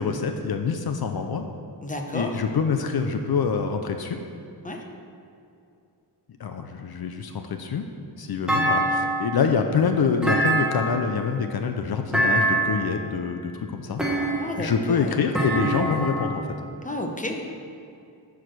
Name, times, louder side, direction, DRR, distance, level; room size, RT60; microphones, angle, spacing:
voice 1, 0.0-1.4 2.1-4.2 6.4-7.8 8.2-14.0 14.6-16.5, left 5 dB, 60° left, 6 dB, 0.6 m, -25 dB
voice 2, 1.8-2.3 4.6-4.8 14.4-15.2 16.8-17.5, left 1 dB, 20° left, 2 dB, 0.8 m, -31 dB
Thump thud, 8.5-9.4 10.2-11.1 12.1-12.9 14.0-14.7 15.3-16.4, right 1 dB, ahead, 1.3 m, -24 dB
10.5 x 4.9 x 6.1 m, 2.6 s
wide cardioid pair, 155°, 42 cm